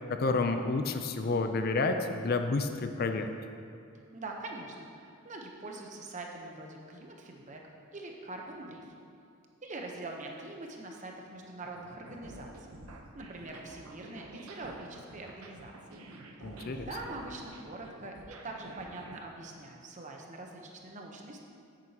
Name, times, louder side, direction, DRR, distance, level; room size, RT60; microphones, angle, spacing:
voice 1, 0.1-3.3 16.4-16.9, left 3 dB, 45° left, 7 dB, 0.4 m, -30 dB
voice 2, 4.1-8.9 9.6-12.8 13.1-16.0 16.3-21.4, right 2 dB, 35° right, 1 dB, 0.8 m, -44 dB
sound 1, 11.6-19.2, right 2 dB, 90° right, 0.8 m, -49 dB
9.8 x 9.1 x 2.9 m, 2.4 s
head